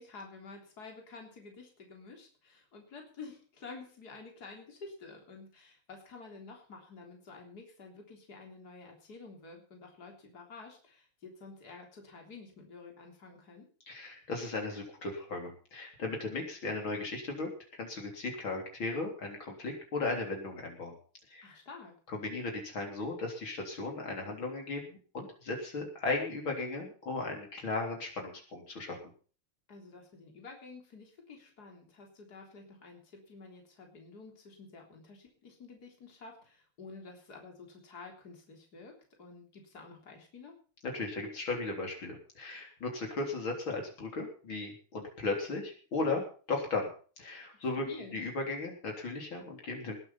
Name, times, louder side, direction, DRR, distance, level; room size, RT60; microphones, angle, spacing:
voice 1, 0.0-13.7 21.4-21.9 29.7-40.5 47.5-48.2, left 4 dB, 45° left, 2 dB, 4.1 m, -50 dB
voice 2, 13.9-21.0 21.3-21.6 22.1-29.0 40.9-46.9 47.2-47.9 48.1-50.0, left 3 dB, 65° left, 1 dB, 4.4 m, -36 dB
20.0 x 9.0 x 5.7 m, 0.40 s
omnidirectional pair, 2.4 m